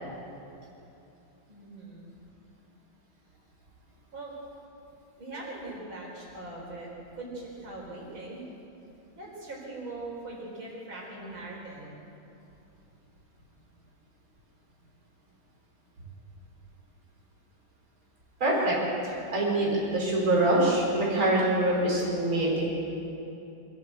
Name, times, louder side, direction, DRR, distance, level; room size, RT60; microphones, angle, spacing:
voice 1, 1.5-2.1 4.1-4.3 5.2-6.9 7.2-8.4 9.1-11.9, right 2 dB, 85° right, -4 dB, 5.3 m, -41 dB
voice 2, 18.4-18.7 19.0-22.7, right 1 dB, 45° right, -4 dB, 5.1 m, -25 dB
24.0 x 15.0 x 8.2 m, 2.8 s
omnidirectional pair, 2.1 m